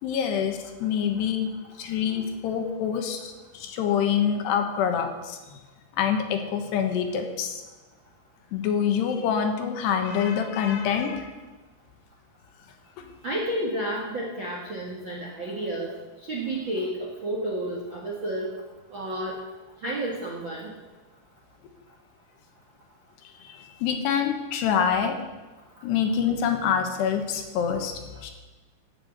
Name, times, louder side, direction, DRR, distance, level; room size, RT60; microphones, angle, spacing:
voice 1, 0.0-1.5 1.8-5.6 6.0-7.6 8.5-11.3 13.0-13.1 23.4-25.1 25.8-28.3, left 7 dB, 75° left, 5 dB, 3.2 m, -26 dB
voice 2, 13.2-15.9 16.3-18.5 18.9-19.4 19.8-20.7, right 1 dB, 50° right, -3 dB, 1.4 m, -31 dB
15.5 x 6.7 x 7.9 m, 1.2 s
omnidirectional pair, 5.1 m